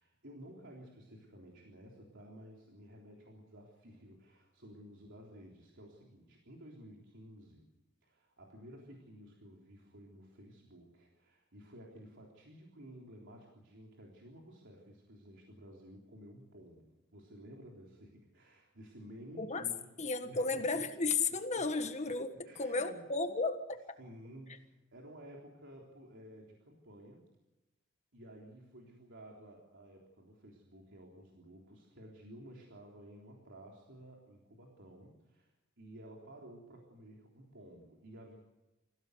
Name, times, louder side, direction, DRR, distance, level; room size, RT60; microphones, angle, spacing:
voice 1, 0.0-7.7 8.0-19.9 20.2-20.9 21.5-21.6 22.4-23.0 24.0-27.2 28.1-38.4, equal, 60° right, -1 dB, 3.7 m, -54 dB
voice 2, 20.0-23.6, left 3 dB, 35° left, 7 dB, 1.6 m, -33 dB
25.5 x 16.5 x 8.1 m, 1.0 s
head